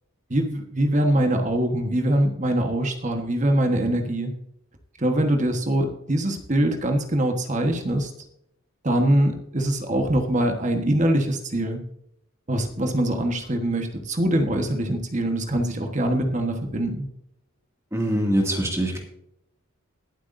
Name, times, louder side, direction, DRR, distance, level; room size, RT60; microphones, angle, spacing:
voice 1, 0.3-4.3 5.0-8.1 8.8-11.8 12.5-17.1, right 1 dB, 35° right, 4 dB, 1.3 m, -23 dB
voice 2, 17.9-19.0, right 1 dB, 15° right, 1 dB, 2.2 m, -23 dB
21.0 x 8.1 x 2.6 m, 0.76 s
head